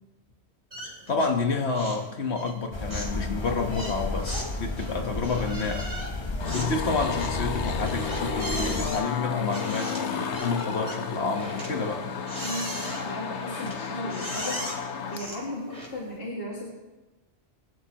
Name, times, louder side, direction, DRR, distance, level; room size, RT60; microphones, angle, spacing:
sound 1, 0.7-1.4 1.7-2.1 2.4-16.2, right 1 dB, 30° right, 3.1 m, -39 dB
voice 1, 1.1-5.9 6.5-12.1, left 4 dB, 70° left, 4 dB, 1.6 m, -29 dB
sound 2, 2.7-8.9, left 2 dB, 25° left, 0.8 m, -32 dB
sound 3, 6.4-15.3, left 6 dB, 90° left, 1.2 m, -33 dB
voice 2, 12.4-14.7 14.9-16.8, left 1 dB, 55° left, -4 dB, 2.3 m, -36 dB
21.0 x 11.5 x 3.0 m, 1.1 s
omnidirectional pair, 1.1 m